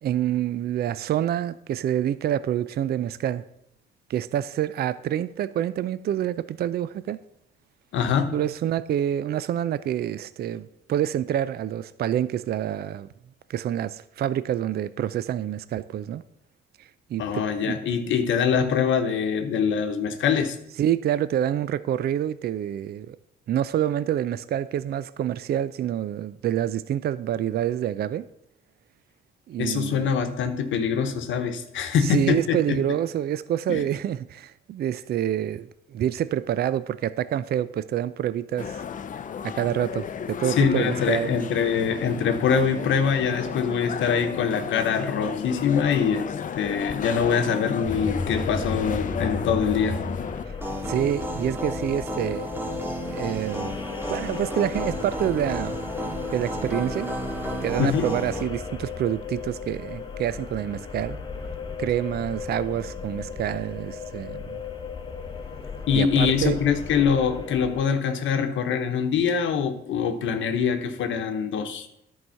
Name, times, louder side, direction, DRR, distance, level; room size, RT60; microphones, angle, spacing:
voice 1, 0.0-3.4 4.1-7.2 8.3-13.1 13.5-16.2 17.1-17.8 20.8-23.2 23.5-28.2 29.5-30.1 32.1-38.9 39.4-41.3 50.9-52.5 53.1-53.7 54.1-55.8 56.3-57.1 57.6-61.2 61.8-64.6 65.9-66.6, right 11 dB, 55° right, 0.4 m, -27 dB
voice 2, 7.9-8.4 17.2-20.6 29.6-32.8 33.7-33.8 40.6-46.3 46.5-50.0 57.8-58.1 65.9-71.9, left 6 dB, 75° left, 1.0 m, -24 dB
sound 1, 38.6-50.4, left 7 dB, 40° left, 0.5 m, -33 dB
sound 2, 47.8-67.8, left 4 dB, 25° left, 1.0 m, -35 dB
sound 3, 50.6-58.4, equal, 10° right, 1.7 m, -33 dB
10.5 x 4.8 x 5.6 m
cardioid pair, 90°, 20 cm